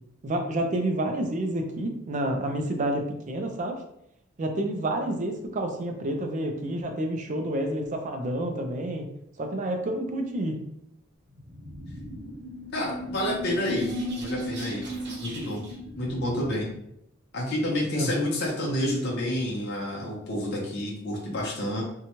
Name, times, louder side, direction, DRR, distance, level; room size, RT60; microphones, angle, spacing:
voice 1, 0.2-3.8 4.4-9.1 9.4-10.6 17.9-18.1, right 1 dB, 35° right, 4 dB, 0.4 m, -29 dB
sound 1, 11.4-16.8, equal, 55° right, 0.9 m, -36 dB
voice 2, 12.7-13.9 14.2-14.9 15.2-15.6 16.0-16.7 17.3-21.8, left 1 dB, 55° left, -3 dB, 0.7 m, -29 dB
2.7 x 2.2 x 2.9 m, 0.76 s
head